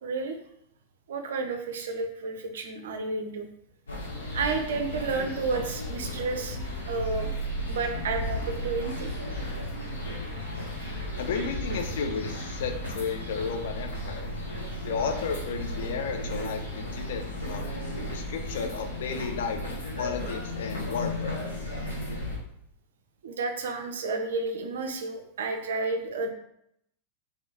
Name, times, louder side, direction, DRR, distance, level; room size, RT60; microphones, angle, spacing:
voice 1, 0.0-0.4 1.1-3.5 4.3-6.6 6.9-7.3 7.7-9.1 23.2-26.3, right 4 dB, 60° right, 5 dB, 0.3 m, -31 dB
sound 1, 3.9-22.4, left 1 dB, 75° left, 0.8 m, -34 dB
voice 2, 11.2-14.3 14.8-17.7 18.1-21.4, left 5 dB, 55° left, 5 dB, 0.3 m, -33 dB
2.6 x 2.1 x 2.7 m, 0.73 s
figure-of-eight pair, 90°, 0 cm